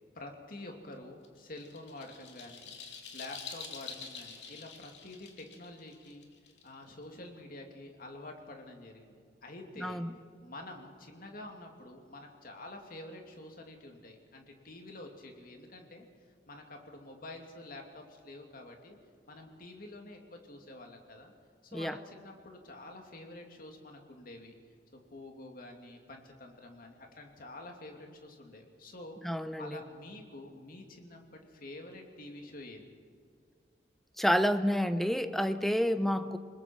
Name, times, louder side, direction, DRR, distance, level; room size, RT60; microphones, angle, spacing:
voice 1, 0.1-6.3 6.6-10.0 10.4-16.1 16.5-19.0 19.3-21.3 21.6-24.5 24.9-29.2 29.6-32.9 35.9-36.2, left 2 dB, 55° left, 2 dB, 2.8 m, -48 dB
sound 1, 1.2-7.0, left 6 dB, 85° left, 2.7 m, -47 dB
voice 2, 9.8-10.1 21.7-22.0 29.2-29.8 34.2-36.4, equal, ahead, 10 dB, 0.8 m, -29 dB
28.0 x 20.5 x 4.7 m, 2.1 s
head